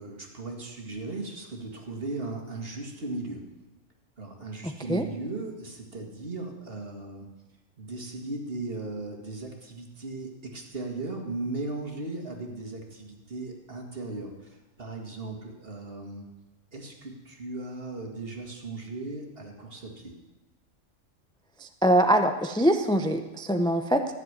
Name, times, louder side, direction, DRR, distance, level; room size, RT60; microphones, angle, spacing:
voice 1, 0.0-3.4 4.2-7.3 7.8-16.3 16.7-20.1, right 2 dB, 50° right, 2 dB, 2.2 m, -37 dB
voice 2, 21.6-24.1, right 1 dB, 5° left, 6 dB, 0.5 m, -23 dB
13.5 x 7.4 x 9.5 m, 1.2 s
omnidirectional pair, 1.3 m